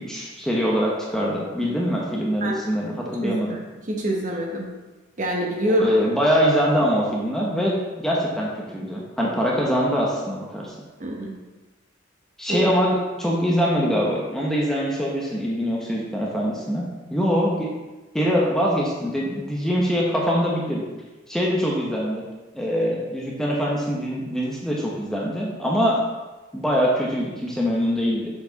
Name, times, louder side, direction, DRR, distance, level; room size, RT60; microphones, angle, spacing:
voice 1, 0.1-3.6 5.7-10.7 12.4-17.7 18.1-20.8 21.3-22.2 22.5-26.0 26.5-28.3, equal, ahead, -4 dB, 0.8 m, -23 dB
voice 2, 3.2-3.6 3.9-4.7 5.2-5.9 11.0-11.3 12.5-12.7, right 1 dB, 35° right, 0 dB, 0.9 m, -25 dB
7.2 x 4.5 x 3.9 m, 1.2 s
head